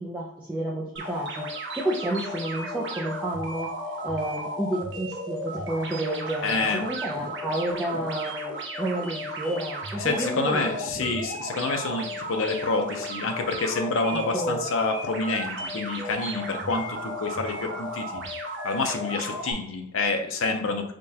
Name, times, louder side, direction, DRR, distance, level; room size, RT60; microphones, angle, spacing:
voice 1, 0.0-1.5 1.7-3.7 4.0-11.1 14.3-14.6, right 1 dB, 10° right, -4 dB, 0.4 m, -30 dB
sound 1, 1.0-19.5, equal, 55° right, 0.7 m, -34 dB
voice 2, 6.4-6.9 10.0-18.2 18.6-20.9, left 3 dB, 65° left, 5 dB, 0.6 m, -28 dB
5.1 x 2.3 x 2.8 m, 0.78 s
head